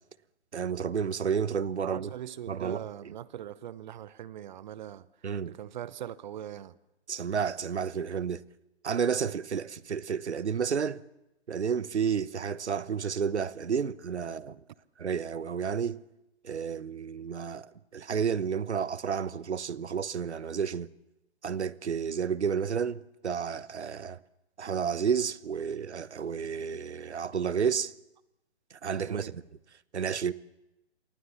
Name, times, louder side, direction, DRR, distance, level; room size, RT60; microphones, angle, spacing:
voice 1, 0.5-2.1 2.5-2.8 5.2-5.6 7.1-8.4 8.8-11.0 11.5-14.6 15.0-16.0 16.4-20.9 21.4-24.2 24.6-27.9 28.8-29.4 29.9-30.3, right 7 dB, 75° right, 1.1 m, -31 dB
voice 2, 1.8-5.1 5.5-6.7 29.1-29.3, right 11 dB, 40° right, 0.9 m, -41 dB
28.5 x 24.0 x 7.2 m
figure-of-eight pair, 130°, 34 cm